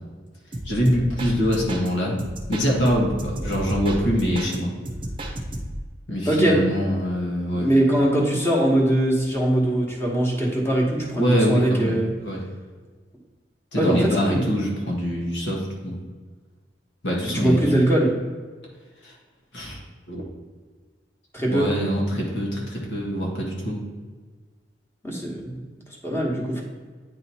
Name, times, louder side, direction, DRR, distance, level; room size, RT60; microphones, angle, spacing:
sound 1, 0.5-1.9 2.2-4.6 4.8-5.9, right 1 dB, 30° right, 0.7 m, -32 dB
voice 1, 0.6-2.2 2.5-4.7 6.1-7.7 11.1-11.9 12.2-12.4 13.7-16.0 17.0-17.6 19.0-19.1 19.5-19.8 20.1-20.2 21.5-23.8, equal, 85° left, -3 dB, 1.6 m, -24 dB
voice 2, 6.3-6.6 7.5-12.1 13.7-14.4 17.2-18.1 21.3-21.6 25.0-25.6 26.0-26.6, right 1 dB, 15° left, -3 dB, 1.2 m, -21 dB
9.0 x 3.1 x 4.2 m, 1.4 s
head